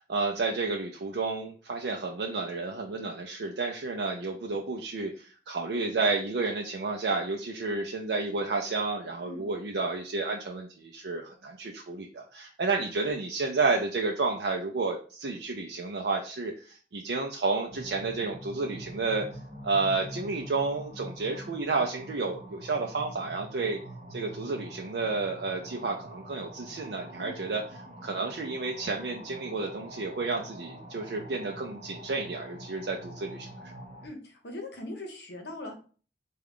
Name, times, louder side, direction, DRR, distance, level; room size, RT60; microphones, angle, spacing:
voice 1, 0.0-19.3 19.6-23.8 24.1-27.6 28.0-33.5, right 3 dB, 65° right, 1 dB, 0.4 m, -31 dB
sound 1, 17.7-34.1, right 1 dB, 40° right, 0.8 m, -45 dB
voice 2, 34.0-35.7, left 1 dB, 65° left, 2 dB, 0.8 m, -40 dB
3.5 x 2.3 x 3.5 m, 0.39 s
head